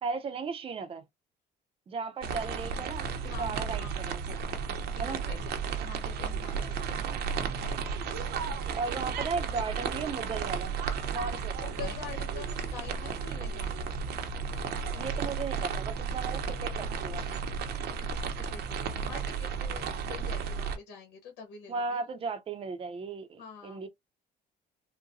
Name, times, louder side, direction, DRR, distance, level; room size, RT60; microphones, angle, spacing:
voice 1, 0.0-1.0 1.9-3.1 3.4-4.6 5.0-5.2 8.7-10.7 11.1-11.9 14.9-17.4 21.7-23.9, right 4 dB, 35° right, 0.6 m, -36 dB
voice 2, 2.2-2.6 3.3-4.0 4.9-5.4 5.6-7.3 11.6-13.7 18.1-22.0 23.4-23.8, left 7 dB, 90° left, 1.1 m, -46 dB
sound 1, 2.2-20.8, right 6 dB, 70° right, 0.8 m, -33 dB
4.0 x 2.2 x 2.6 m
cardioid pair, 110°, 17 cm